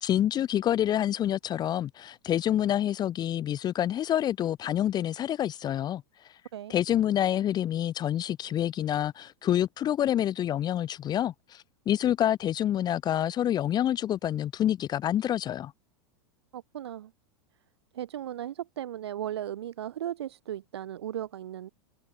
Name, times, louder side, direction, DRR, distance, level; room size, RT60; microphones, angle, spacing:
voice 1, 0.0-6.0 6.7-15.7, left 11 dB, 30° left, 1.1 m, -27 dB
voice 2, 16.5-17.1 17.9-21.7, right 11 dB, 85° right, 2.0 m, -36 dB
hypercardioid pair, 115°, 13 cm